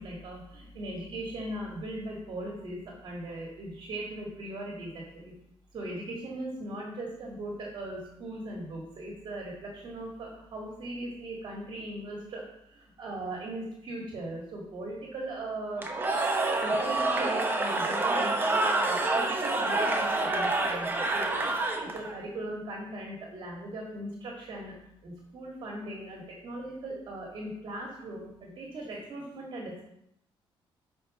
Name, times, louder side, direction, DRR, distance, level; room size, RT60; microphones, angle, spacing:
voice 1, 0.0-5.3 5.7-12.4 12.7-15.9 16.6-21.4 21.8-24.7 25.0-29.8, right 1 dB, 50° right, -1 dB, 1.9 m, -39 dB
Cheering / Crowd, 15.8-22.1, right 2 dB, 20° right, 0.9 m, -27 dB
8.0 x 4.8 x 5.3 m, 0.78 s
cardioid pair, 155°, 10 cm